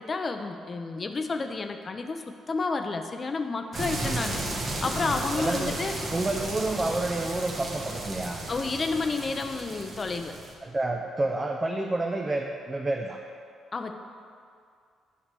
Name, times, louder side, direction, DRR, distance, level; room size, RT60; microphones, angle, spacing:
voice 1, 0.0-5.9 8.5-10.4 13.7-13.9, left 4 dB, 35° left, 6 dB, 0.6 m, -31 dB
sound 1, 3.7-10.5, right 1 dB, 45° right, 1.4 m, -34 dB
voice 2, 5.4-5.8 6.1-8.4 10.6-13.2, right 2 dB, 20° right, 2 dB, 0.5 m, -29 dB
8.8 x 3.3 x 6.7 m, 2.3 s
cardioid pair, 90°, 0 cm